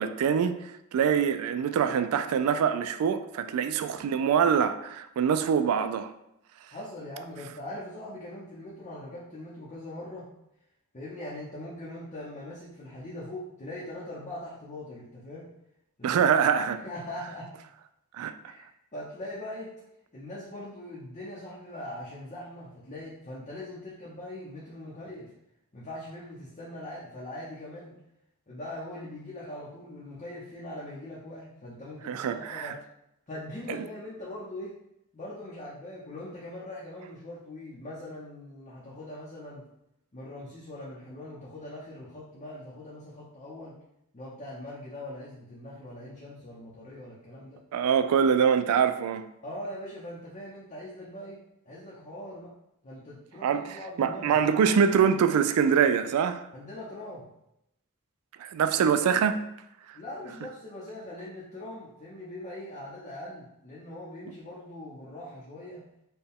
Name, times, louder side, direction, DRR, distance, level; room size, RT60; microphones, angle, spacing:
voice 1, 0.0-6.1 16.0-16.8 18.1-18.5 32.1-32.7 47.7-49.2 53.4-56.4 58.4-59.4, right 7 dB, 75° right, 0.3 m, -24 dB
voice 2, 6.7-10.3 10.9-15.5 16.0-16.3 16.8-17.5 18.4-18.6 18.9-19.7 20.1-25.3 25.7-27.9 28.5-32.8 33.3-34.8 35.1-39.7 40.1-43.8 44.1-47.6 49.4-52.5 52.8-54.5 56.5-57.3 59.9-65.9, left 1 dB, 30° left, 0.7 m, -41 dB
4.3 x 2.2 x 3.5 m
head